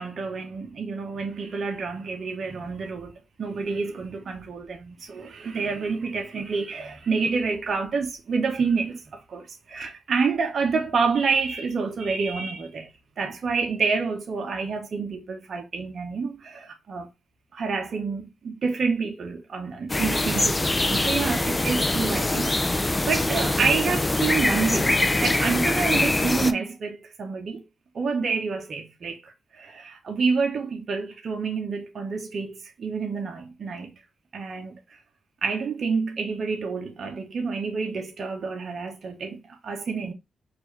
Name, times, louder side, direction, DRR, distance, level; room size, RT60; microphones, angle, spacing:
voice 1, 0.0-12.9 13.2-17.1 17.5-27.6 27.9-34.0 34.3-34.8 35.4-40.1, right 5 dB, 60° right, 1.0 m, -28 dB
sound 1, 19.9-26.5, left 2 dB, 20° left, 0.5 m, -23 dB
4.4 x 2.6 x 3.2 m
cardioid pair, 65°, 0 cm